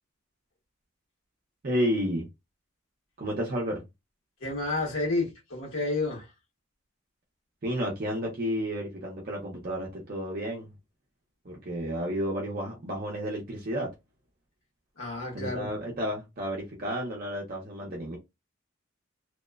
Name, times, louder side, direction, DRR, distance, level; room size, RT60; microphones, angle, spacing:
voice 1, 1.6-2.3 3.2-3.8 7.6-10.7 11.4-13.9 15.3-18.2, equal, 45° right, 0.6 m, -31 dB
voice 2, 4.4-6.3 15.0-15.7, left 2 dB, 75° left, 1.2 m, -30 dB
2.8 x 2.1 x 2.2 m
head